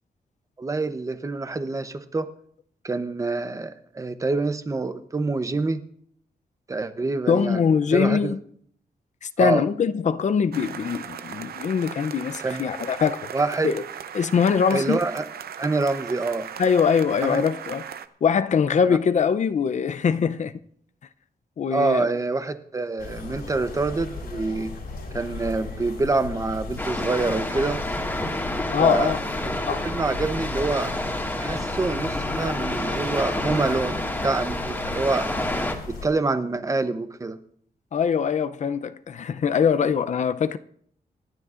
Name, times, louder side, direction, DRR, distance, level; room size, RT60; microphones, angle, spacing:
voice 1, 0.6-2.3 2.8-5.8 6.7-7.6 7.9-8.3 9.4-9.6 12.4-12.6 13.3-13.7 14.7-15.2 15.6-16.5 17.2-17.4 18.9-19.0 21.7-24.7 25.1-27.8 28.8-29.2 29.4-30.9 31.4-35.3 35.9-37.4, right 3 dB, 20° right, 0.7 m, -26 dB
voice 2, 7.3-8.4 9.2-13.3 13.6-13.8 14.1-15.0 16.6-17.8 18.2-20.5 21.6-22.1 28.7-29.2 29.7-29.9 37.9-40.6, left 6 dB, 50° left, 0.5 m, -22 dB
sound 1, 10.5-18.1, right 8 dB, 80° right, 0.7 m, -37 dB
sound 2, 23.0-36.1, left 4 dB, 85° left, 6.0 m, -36 dB
sound 3, 26.8-35.7, left 1 dB, 10° left, 1.8 m, -29 dB
26.5 x 10.5 x 2.5 m
wide cardioid pair, 150°, 16 cm